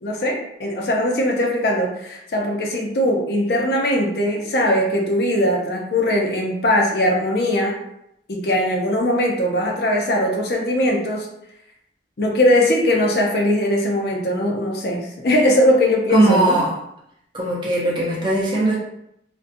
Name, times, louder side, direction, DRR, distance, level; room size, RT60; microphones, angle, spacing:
voice 1, 0.0-7.7 8.3-11.3 12.2-16.6, left 1 dB, 60° left, -1 dB, 0.5 m, -20 dB
voice 2, 16.1-16.7 17.3-18.8, right 1 dB, 25° right, -4 dB, 0.6 m, -19 dB
2.4 x 2.2 x 2.5 m, 0.79 s
head